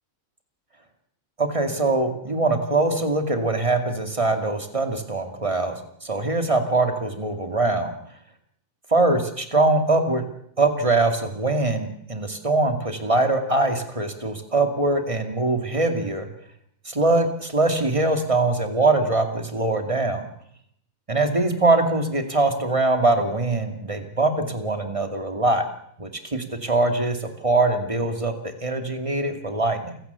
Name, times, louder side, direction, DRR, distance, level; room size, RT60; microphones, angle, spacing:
voice 1, 1.4-7.9 8.9-10.2 10.6-16.3 16.8-20.2 21.1-25.6 26.0-28.3 28.6-30.0, right 2 dB, 25° right, 6 dB, 2.5 m, -22 dB
28.5 x 16.5 x 7.0 m, 0.71 s
omnidirectional pair, 1.4 m